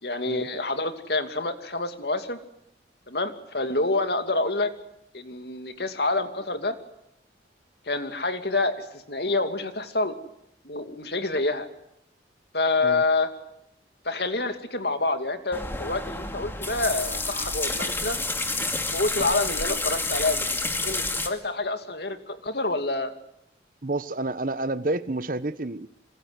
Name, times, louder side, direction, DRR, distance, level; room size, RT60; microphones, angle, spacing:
voice 1, 0.0-2.4 3.1-4.7 5.1-6.7 7.9-10.2 10.6-11.7 12.5-13.3 14.0-18.2 18.9-23.1, left 2 dB, 60° left, 2.6 m, -27 dB
sound 1, 15.5-21.3, left 2 dB, 15° left, 2.3 m, -29 dB
voice 2, 23.8-25.9, right 2 dB, 45° right, 1.0 m, -29 dB
26.0 x 26.0 x 8.2 m
head